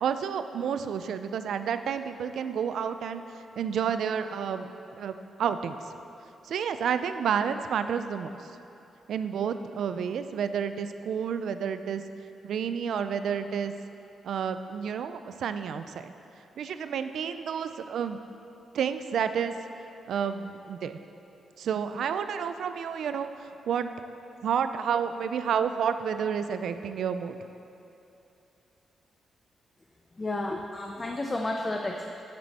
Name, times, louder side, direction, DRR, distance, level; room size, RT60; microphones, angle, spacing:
voice 1, 0.0-3.2 3.6-5.1 5.4-5.8 6.4-8.3 9.1-12.0 12.4-13.7 14.2-16.1 16.6-18.2 18.7-19.5 20.1-21.0 21.6-23.9 24.4-27.5, right 7 dB, 70° right, 10 dB, 0.4 m, -30 dB
voice 2, 30.2-32.1, left 2 dB, 20° left, 2 dB, 0.5 m, -31 dB
10.5 x 7.6 x 4.1 m, 2.9 s
cardioid pair, 135°, 0 cm